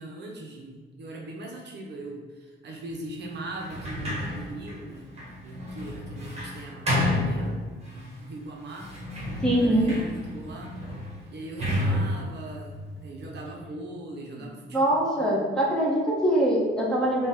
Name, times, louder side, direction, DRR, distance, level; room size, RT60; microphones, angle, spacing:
voice 1, 0.0-5.1 5.4-8.9 9.5-10.7 11.3-15.6, right 1 dB, 60° right, 0 dB, 0.7 m, -40 dB
Sliding door, 3.6-8.1 8.7-13.6, left 1 dB, 30° right, 1.4 m, -31 dB
voice 2, 9.4-10.0 14.7-17.3, right 1 dB, 5° left, -5 dB, 1.2 m, -23 dB
5.3 x 2.3 x 3.6 m, 1.3 s
cardioid pair, 90°, 20 cm